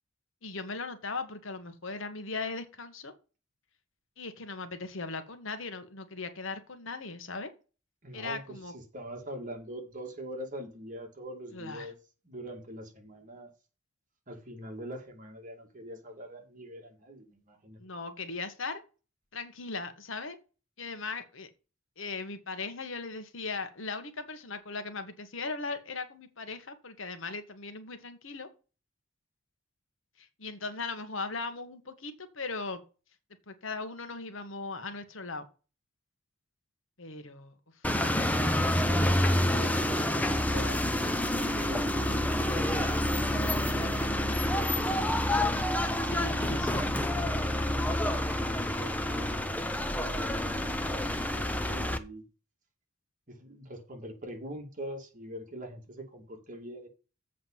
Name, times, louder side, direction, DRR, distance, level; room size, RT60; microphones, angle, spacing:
voice 1, 0.4-3.1 4.2-7.5 8.1-8.7 11.5-11.9 17.8-18.8 19.3-20.4 20.8-21.5 22.0-28.5 30.2-32.8 33.5-35.5 37.0-37.5 38.1-38.9 46.0-47.5, left 3 dB, 65° left, 1.4 m, -38 dB
voice 2, 8.0-8.4 8.7-12.0 12.2-13.5 14.3-17.8 39.2-45.1 48.4-52.2 53.3-56.9, equal, 40° right, 2.3 m, -44 dB
sound 1, 37.8-52.0, left 1 dB, 5° left, 0.8 m, -28 dB
7.8 x 5.1 x 7.3 m
head